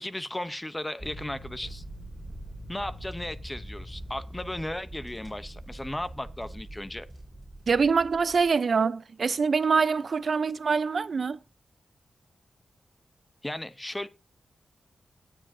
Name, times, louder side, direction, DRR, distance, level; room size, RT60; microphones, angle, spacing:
voice 1, 0.0-1.8 2.7-7.1 13.4-14.1, left 1 dB, 15° left, 0.8 m, -35 dB
sound 1, 1.0-8.5, right 1 dB, 5° right, 5.7 m, -43 dB
voice 2, 7.7-11.4, right 5 dB, 55° right, 0.7 m, -24 dB
18.5 x 7.5 x 2.7 m
wide cardioid pair, 125°, 0 cm